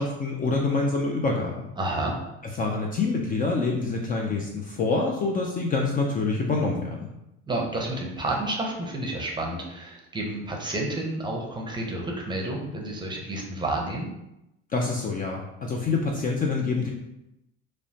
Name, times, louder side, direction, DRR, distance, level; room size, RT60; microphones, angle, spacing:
voice 1, 0.0-1.7 2.6-7.1 14.7-16.9, left 3 dB, 30° left, 0 dB, 0.4 m, -26 dB
voice 2, 1.8-2.1 7.5-14.1, right 2 dB, 15° right, -1 dB, 0.6 m, -30 dB
3.1 x 2.0 x 2.7 m, 0.88 s
supercardioid pair, 95°, 30 cm